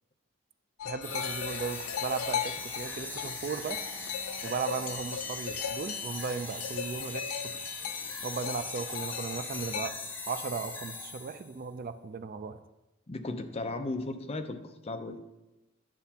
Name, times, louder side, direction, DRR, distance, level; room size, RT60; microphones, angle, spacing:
sound 1, 0.8-9.9, left 8 dB, 90° left, 0.4 m, -38 dB
voice 1, 0.8-3.8 4.4-7.5 8.2-10.0 10.3-12.6, right 5 dB, 45° right, 11 dB, 0.4 m, -36 dB
sound 2, 1.0-11.5, left 3 dB, 10° left, 0.9 m, -40 dB
voice 2, 13.1-15.2, left 2 dB, 30° left, 7 dB, 0.6 m, -36 dB
10.0 x 6.8 x 2.8 m, 0.97 s
head